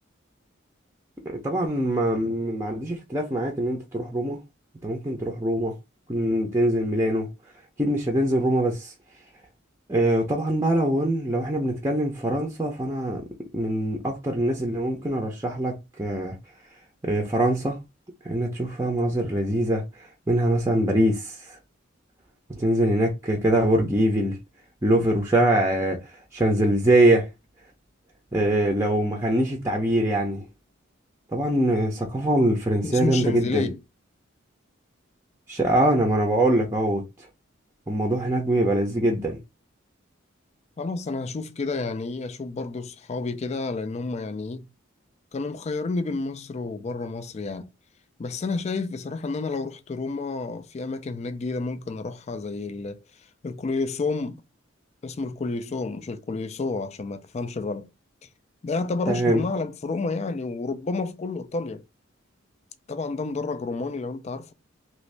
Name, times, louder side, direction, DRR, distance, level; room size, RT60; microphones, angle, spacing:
voice 1, 1.4-4.4 4.8-5.7 6.1-7.3 7.8-8.9 9.9-13.2 13.5-16.4 17.0-17.8 18.2-19.8 20.3-21.6 22.5-24.4 24.8-26.0 26.3-27.3 28.3-30.5 31.3-33.7 35.5-37.0 37.9-39.4 59.1-59.4, right 1 dB, 15° right, 0.6 m, -23 dB
voice 2, 32.8-33.8 40.8-44.7 45.3-47.7 48.2-53.0 53.4-54.4 55.0-57.9 58.6-61.8 62.9-64.5, left 3 dB, 35° left, 0.3 m, -30 dB
2.8 x 2.6 x 3.2 m
head